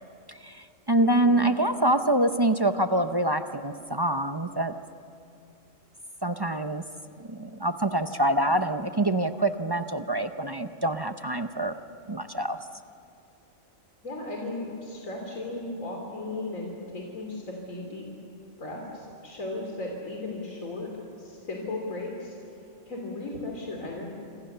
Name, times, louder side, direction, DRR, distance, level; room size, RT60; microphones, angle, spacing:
voice 1, 0.3-4.7 6.2-6.8 7.3-11.7 12.1-12.6, right 1 dB, 25° right, 8 dB, 0.6 m, -25 dB
voice 2, 1.0-1.5 14.0-18.0 18.6-20.9 21.2-22.3 22.9-24.1, left 2 dB, 80° left, 0 dB, 3.6 m, -36 dB
26.5 x 26.5 x 6.8 m, 2.5 s
omnidirectional pair, 1.4 m